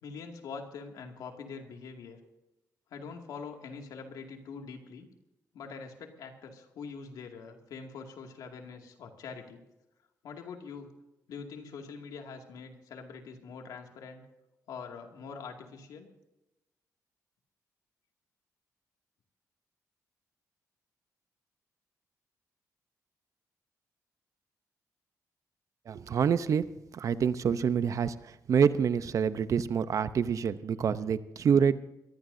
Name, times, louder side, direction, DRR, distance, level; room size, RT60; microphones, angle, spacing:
voice 1, 0.0-2.2 2.9-5.1 5.5-9.6 10.2-10.9 11.3-14.2 14.7-16.1, left 5 dB, 90° left, 3 dB, 2.3 m, -44 dB
voice 2, 25.9-26.6 26.9-28.1 28.5-31.8, right 7 dB, 60° right, 13 dB, 0.7 m, -26 dB
22.5 x 15.5 x 2.7 m, 0.94 s
cardioid pair, 95°, 6 cm